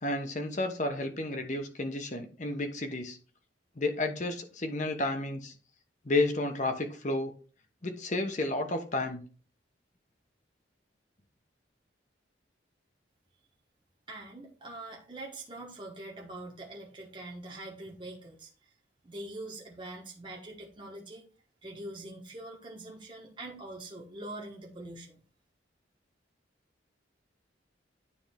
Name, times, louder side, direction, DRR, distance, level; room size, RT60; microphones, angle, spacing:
voice 1, 0.0-3.2 3.8-5.5 6.0-7.3 7.8-9.2, left 2 dB, 40° left, 5 dB, 1.0 m, -31 dB
voice 2, 14.1-18.5 19.0-21.3 21.6-25.2, right 2 dB, 25° right, -1 dB, 1.1 m, -43 dB
9.7 x 3.5 x 3.5 m, 0.38 s
head